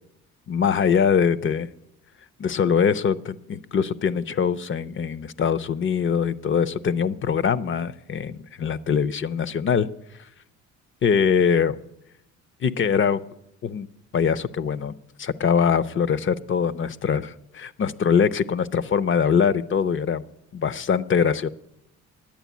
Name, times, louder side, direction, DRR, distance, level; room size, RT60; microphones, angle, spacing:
voice 1, 0.5-1.7 2.4-9.9 11.0-11.8 12.6-13.2 13.6-13.9 14.1-14.9 15.2-20.2 20.5-21.5, left 7 dB, 40° left, 17 dB, 0.6 m, -23 dB
10.5 x 8.8 x 8.3 m, 0.83 s
cardioid pair, 90°, 30 cm